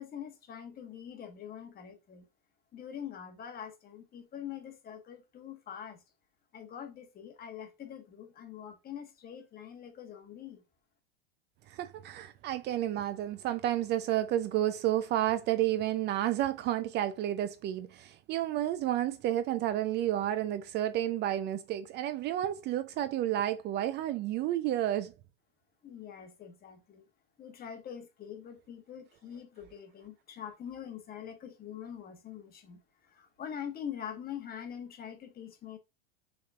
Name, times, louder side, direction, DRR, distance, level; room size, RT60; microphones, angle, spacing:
voice 1, 0.0-2.3 2.7-6.0 6.5-10.6 25.8-27.0 27.4-35.8, left 9 dB, 30° left, 1.2 m, -44 dB
voice 2, 11.7-25.1, right 12 dB, 35° right, 0.4 m, -31 dB
6.2 x 3.5 x 2.3 m
hypercardioid pair, 100°, 29 cm